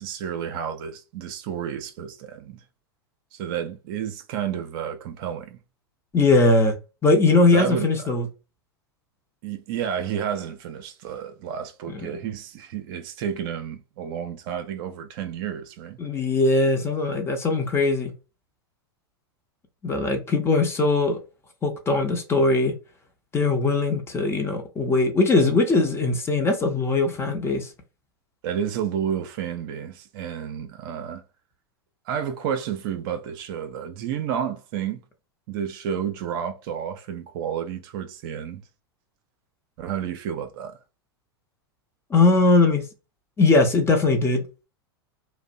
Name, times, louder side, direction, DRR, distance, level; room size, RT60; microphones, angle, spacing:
voice 1, 0.0-2.6 3.3-5.6 7.5-7.9 9.4-16.0 28.4-31.2 32.1-35.0 35.5-38.6 39.8-40.8, right 8 dB, 55° right, 0.5 m, -31 dB
voice 2, 6.1-6.8 7.0-8.3 11.9-12.2 16.0-18.1 19.8-21.2 21.6-22.8 23.3-27.7 42.1-42.8 43.4-44.4, left 3 dB, 20° left, 0.7 m, -20 dB
2.6 x 2.1 x 2.5 m
hypercardioid pair, 105°, 13 cm